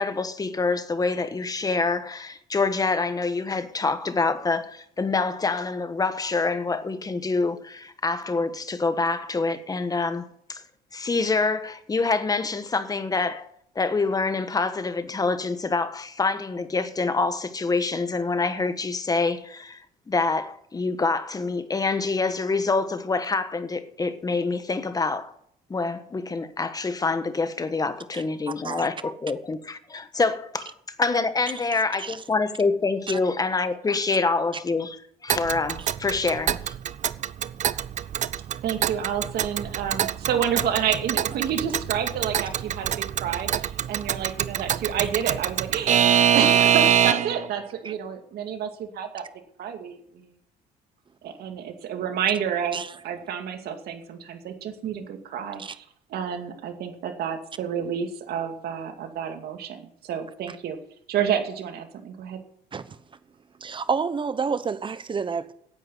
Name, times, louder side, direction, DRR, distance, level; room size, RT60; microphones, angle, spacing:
voice 1, 0.0-10.6 10.9-13.5 13.7-19.8 20.1-25.3 25.7-30.7 31.0-35.0 35.2-36.7, left 3 dB, 20° left, 1.3 m, -26 dB
Alarm / Clock, 35.3-47.4, right 9 dB, 45° right, 0.6 m, -24 dB
voice 2, 38.6-49.2 49.6-50.3 51.2-55.8 56.1-60.8 61.1-62.4, right 8 dB, 70° right, 2.4 m, -29 dB
voice 3, 63.6-65.5, right 5 dB, 30° right, 1.0 m, -29 dB
10.0 x 8.8 x 9.5 m
cardioid pair, 110°, 17 cm